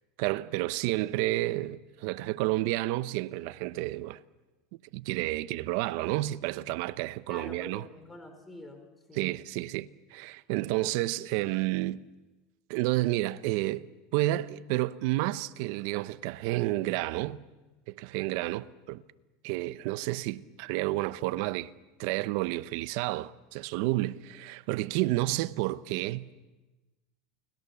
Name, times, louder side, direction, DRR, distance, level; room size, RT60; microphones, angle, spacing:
voice 1, 0.2-4.2 4.9-7.8 9.1-12.0 12.7-17.4 17.9-19.0 19.4-21.7 22.0-26.2, right 17 dB, 65° right, 0.9 m, -30 dB
voice 2, 7.3-9.4, left 2 dB, 10° left, 4.3 m, -47 dB
29.5 x 20.5 x 7.0 m
supercardioid pair, 120°, 0 cm